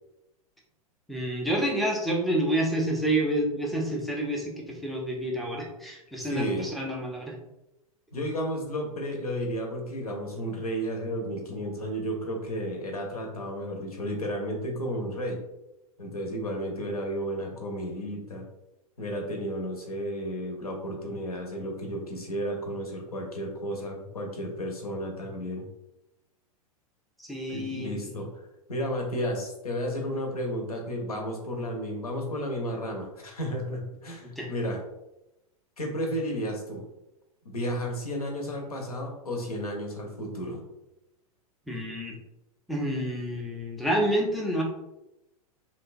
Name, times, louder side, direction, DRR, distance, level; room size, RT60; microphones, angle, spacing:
voice 1, 1.1-7.4 27.2-28.0 34.2-34.5 41.7-42.2 42.7-44.6, right 1 dB, ahead, -2 dB, 0.5 m, -28 dB
voice 2, 6.2-6.7 8.1-15.4 16.0-18.5 19.0-25.6 27.5-28.3 28.7-34.8 35.8-36.8 37.4-40.6, equal, 80° left, 2 dB, 0.7 m, -32 dB
2.9 x 2.2 x 2.5 m, 0.91 s
figure-of-eight pair, 95°, 19 cm